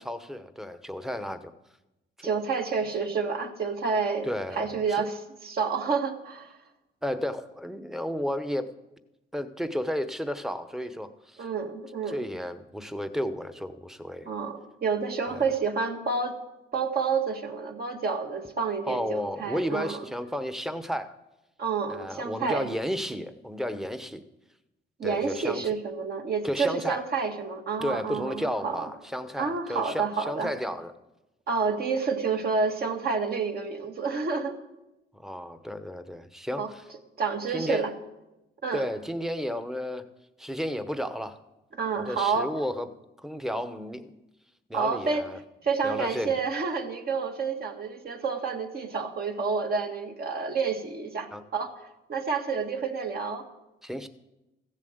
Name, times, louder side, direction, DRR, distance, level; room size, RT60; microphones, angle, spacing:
voice 1, 0.0-1.5 2.2-2.3 4.2-4.7 5.0-5.1 7.0-8.7 9.3-11.4 12.1-14.3 15.3-15.5 18.9-21.2 21.9-24.2 25.0-25.7 26.4-27.1 27.8-30.9 35.1-36.8 37.5-37.8 38.7-40.0 40.4-41.4 42.0-42.9 43.2-44.1 44.7-45.4 45.8-46.4 51.3-51.4 53.8-54.1, equal, ahead, 10 dB, 0.9 m, -32 dB
voice 2, 2.2-4.3 4.5-6.5 11.4-12.2 14.3-16.4 16.7-20.0 21.6-22.7 25.0-28.9 29.4-30.5 31.5-34.6 36.6-36.7 37.2-37.9 38.6-38.9 41.7-42.5 44.7-45.2 45.6-51.7 52.1-53.4, right 5 dB, 50° right, 3 dB, 1.8 m, -29 dB
15.0 x 7.4 x 7.9 m, 0.97 s
cardioid pair, 90°, 20 cm